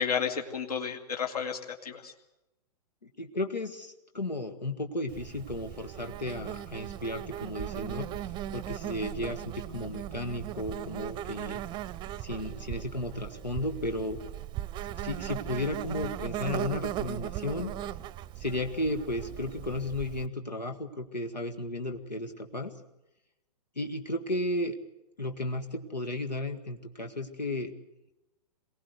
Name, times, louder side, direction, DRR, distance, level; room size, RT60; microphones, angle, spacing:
voice 1, 0.0-2.1, left 7 dB, 65° left, 3 dB, 2.7 m, -32 dB
voice 2, 3.0-8.1 8.5-11.6 12.2-14.2 15.0-17.7 18.4-22.7 23.8-24.8 25.2-27.7, left 1 dB, 90° left, 5 dB, 1.9 m, -34 dB
Insect, 5.1-20.3, right 12 dB, 20° right, 0.7 m, -38 dB
23.5 x 18.0 x 8.1 m, 0.96 s
figure-of-eight pair, 115°, 21 cm